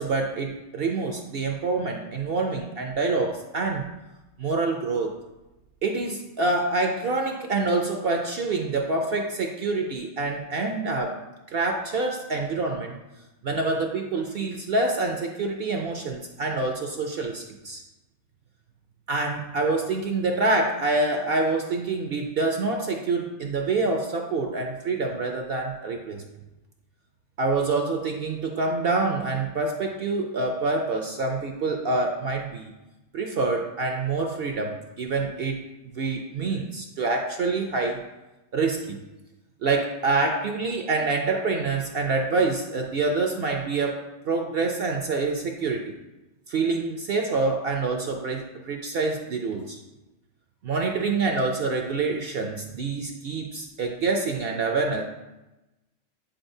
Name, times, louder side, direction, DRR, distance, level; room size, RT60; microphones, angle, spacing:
voice 1, 0.0-3.9 4.4-5.2 5.8-11.2 11.5-13.0 13.4-17.8 19.1-26.2 27.4-32.7 33.1-35.6 36.0-38.0 38.5-39.0 39.6-46.0 46.5-49.8 50.6-55.0, right 3 dB, 60° right, 3 dB, 0.6 m, -26 dB
9.0 x 4.0 x 2.6 m, 1.0 s
omnidirectional pair, 1.3 m